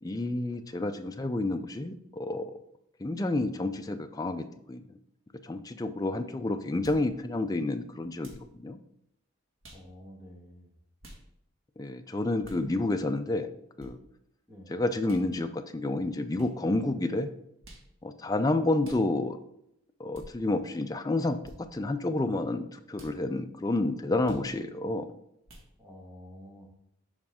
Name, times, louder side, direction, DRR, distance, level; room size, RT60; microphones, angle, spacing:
voice 1, 0.0-2.6 3.0-4.8 5.4-8.8 11.8-13.5 13.8-14.0 14.7-17.3 18.0-19.4 20.0-25.1, left 2 dB, 15° left, 6 dB, 0.4 m, -30 dB
sound 1, 6.8-7.1 8.2-8.5 9.6-9.9 11.0-11.2 12.4-12.6 13.8-13.9 15.0-15.3 16.3-16.5 17.6-17.9 18.8-19.0 20.1-20.3 21.4-21.6 22.9-23.2 24.2-24.5 25.4-25.7, right 1 dB, 70° right, 1.7 m, -49 dB
voice 2, 9.7-10.7 14.5-14.7 25.8-26.7, equal, 10° right, -2 dB, 1.5 m, -49 dB
7.2 x 5.2 x 3.6 m, 0.78 s
head